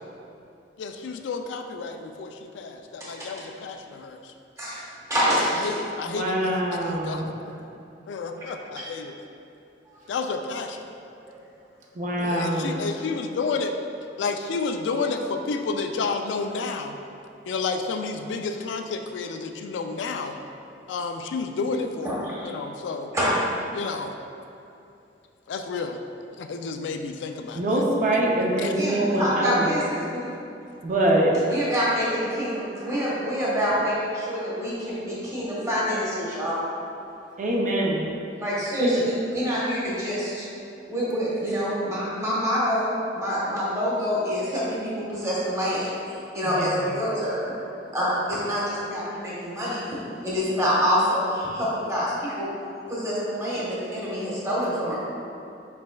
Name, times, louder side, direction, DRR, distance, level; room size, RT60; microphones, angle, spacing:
voice 1, 0.8-4.3 5.6-7.3 8.1-9.1 10.1-10.9 12.2-13.7 14.2-17.0 17.5-20.4 20.9-22.2 22.4-23.1 23.7-24.1 25.5-26.0 26.4-27.9 28.6-28.7, left 4 dB, 85° left, 5 dB, 0.3 m, -31 dB
voice 2, 4.6-5.7 8.7-8.8 11.2-11.3 12.2-12.3 15.1-15.2 21.7-21.8 22.0-22.5 23.1-23.4 28.6-30.2 31.4-36.6 38.4-40.5 40.9-42.9 43.1-47.6 47.9-49.8 50.2-52.5 52.9-55.0, equal, 15° right, -7 dB, 1.1 m, -26 dB
voice 3, 6.1-7.3 12.0-12.7 27.6-29.7 30.8-31.3 37.4-38.1 38.8-39.0 46.6-46.7, right 1 dB, 45° right, -2 dB, 0.5 m, -24 dB
5.0 x 4.2 x 2.2 m, 2.8 s
head